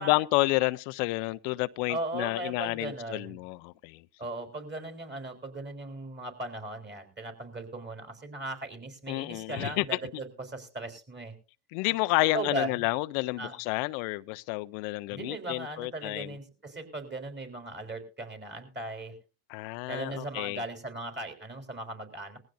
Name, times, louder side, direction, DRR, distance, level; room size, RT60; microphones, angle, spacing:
voice 1, 0.0-4.0 9.1-10.0 11.7-16.3 19.5-20.6, left 22 dB, 75° left, 0.7 m, -30 dB
voice 2, 1.9-3.4 4.2-11.3 12.2-12.7 13.4-13.6 15.1-19.1 19.9-22.4, right 2 dB, 20° right, 4.0 m, -38 dB
19.5 x 15.5 x 2.6 m
supercardioid pair, 90°, 50 cm